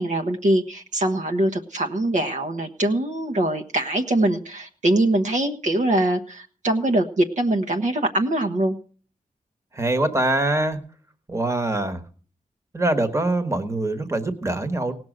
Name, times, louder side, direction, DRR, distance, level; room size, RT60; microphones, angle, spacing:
voice 1, 0.0-8.8, right 1 dB, 60° right, 4 dB, 1.1 m, -23 dB
voice 2, 9.7-10.8 11.3-12.0 12.7-14.9, right 2 dB, 20° right, 8 dB, 1.4 m, -23 dB
18.0 x 6.2 x 6.5 m, 0.42 s
wide cardioid pair, 115°, 14 cm